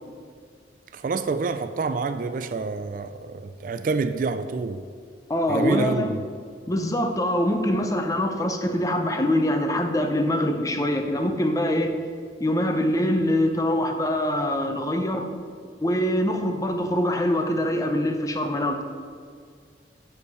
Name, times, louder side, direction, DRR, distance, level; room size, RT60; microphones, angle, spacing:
voice 1, 0.9-4.8 5.5-6.2, right 4 dB, 50° right, 0.3 m, -27 dB
voice 2, 5.3-6.1 6.7-11.9 12.4-15.3 15.8-18.8, left 1 dB, 20° left, 0.6 m, -24 dB
6.5 x 5.5 x 6.5 m
head